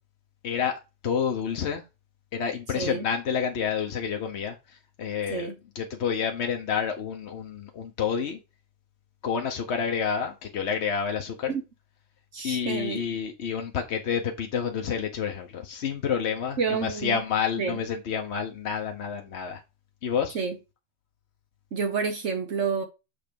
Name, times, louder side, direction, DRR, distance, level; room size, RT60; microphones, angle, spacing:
voice 1, 0.4-1.8 2.3-5.5 5.7-8.4 9.2-11.5 12.4-19.6 20.0-20.4, left 7 dB, 60° left, 1.0 m, -29 dB
voice 2, 2.7-3.1 5.3-5.6 11.5-11.6 12.3-13.0 16.6-17.2 17.6-17.8 20.3-20.6 21.7-22.8, right 5 dB, 70° right, 1.3 m, -29 dB
6.7 x 3.3 x 5.1 m
omnidirectional pair, 1.3 m